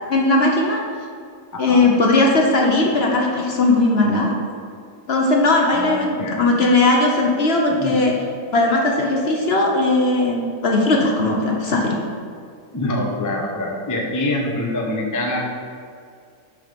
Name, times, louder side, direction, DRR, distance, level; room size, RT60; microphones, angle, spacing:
voice 1, 0.1-0.8 1.6-4.3 5.1-8.1 8.5-12.0, left 2 dB, 50° left, -1 dB, 1.0 m, -18 dB
voice 2, 5.7-6.5 7.8-8.0 12.7-15.4, left 1 dB, 20° left, 0 dB, 0.6 m, -25 dB
6.5 x 5.8 x 5.2 m, 2.3 s
omnidirectional pair, 1.6 m